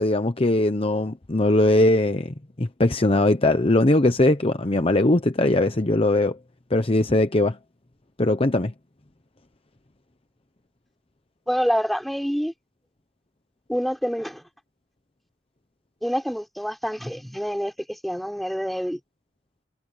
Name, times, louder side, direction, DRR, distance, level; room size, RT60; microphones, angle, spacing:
voice 1, 0.0-6.4 6.7-7.6 8.2-8.7, left 2 dB, 30° left, 0.9 m, -20 dB
voice 2, 11.5-12.5 13.7-14.4 16.0-19.0, equal, ahead, 4.6 m, -27 dB
head